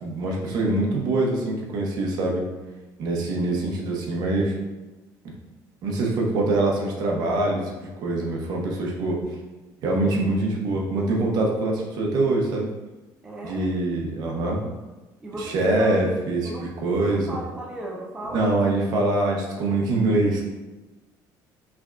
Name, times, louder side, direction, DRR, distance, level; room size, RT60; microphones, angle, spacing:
voice 1, 0.0-2.5 3.0-4.6 5.8-9.1 9.8-12.7 13.4-14.6 15.4-16.5 16.8-17.4 18.3-20.4, right 2 dB, 55° right, -1 dB, 1.0 m, -24 dB
voice 2, 13.2-13.7 15.2-16.0 16.4-16.6 17.0-18.4, right 1 dB, 10° right, -3 dB, 0.5 m, -35 dB
5.8 x 3.4 x 2.5 m, 1.1 s
cardioid pair, 175°, 8 cm